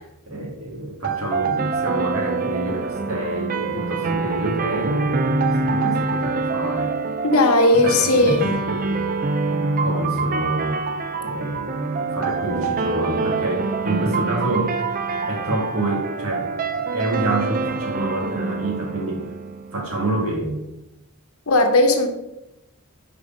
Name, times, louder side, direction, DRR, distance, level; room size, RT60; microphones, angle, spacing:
voice 1, 0.3-6.9 7.7-9.1 9.8-10.8 11.2-14.8 15.3-19.3 19.7-20.6, right 2 dB, 80° right, -1 dB, 2.0 m, -27 dB
sound 1, 1.0-20.0, right 4 dB, 40° right, 0.4 m, -25 dB
voice 2, 7.2-8.5 21.5-22.1, left 2 dB, 85° left, 4 dB, 1.0 m, -16 dB
5.2 x 4.9 x 5.0 m, 0.93 s
head